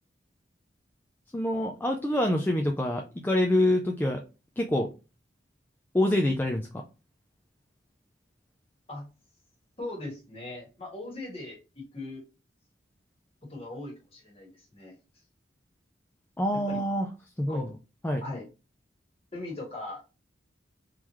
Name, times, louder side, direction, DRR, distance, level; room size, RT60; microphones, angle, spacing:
voice 1, 1.3-4.2 4.6-4.9 5.9-6.8 16.4-17.1 17.4-17.7 18.0-18.2, left 1 dB, 10° left, 3 dB, 0.3 m, -26 dB
voice 2, 9.8-12.2 13.5-15.0 16.7-16.8 17.5-17.7 18.2-18.5 19.3-20.0, left 2 dB, 30° left, -1 dB, 1.5 m, -39 dB
3.7 x 3.1 x 3.0 m, 0.30 s
head